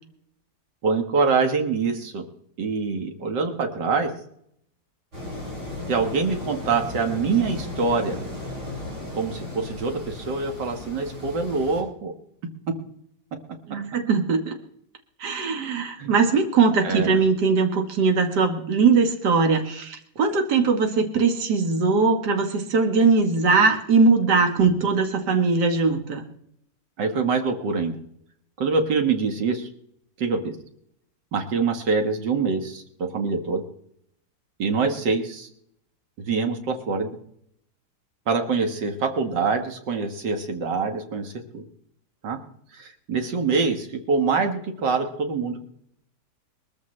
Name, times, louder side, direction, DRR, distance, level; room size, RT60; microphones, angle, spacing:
voice 1, 0.8-2.2 2.6-4.1 5.9-8.2 9.1-12.1 16.0-16.1 16.8-17.2 27.0-28.0 28.6-29.7 30.2-30.6 31.3-33.6 34.6-35.5 36.2-37.2 38.3-41.6 42.2-42.4 42.7-45.6, right 4 dB, 90° right, 5 dB, 2.2 m, -25 dB
sound 1, 5.1-11.8, left 2 dB, 40° right, 7.0 m, -35 dB
voice 2, 13.7-14.6 15.2-26.2, right 4 dB, 75° right, 4 dB, 1.9 m, -20 dB
22.0 x 14.0 x 3.2 m, 0.71 s
omnidirectional pair, 1.8 m